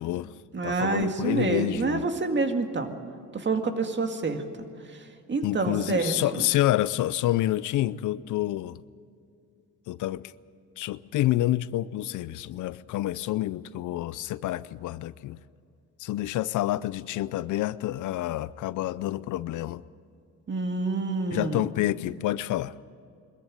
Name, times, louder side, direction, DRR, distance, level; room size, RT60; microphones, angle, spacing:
voice 1, 0.0-0.4 0.6-2.0 5.4-8.8 9.9-10.3 10.8-15.4 16.0-19.8 21.3-22.7, left 15 dB, 80° left, 18 dB, 0.6 m, -28 dB
voice 2, 0.5-2.9 3.3-4.4 5.3-6.4 20.5-21.6, right 4 dB, 40° right, 6 dB, 2.1 m, -27 dB
22.0 x 14.0 x 10.0 m, 2.4 s
cardioid pair, 90°, 30 cm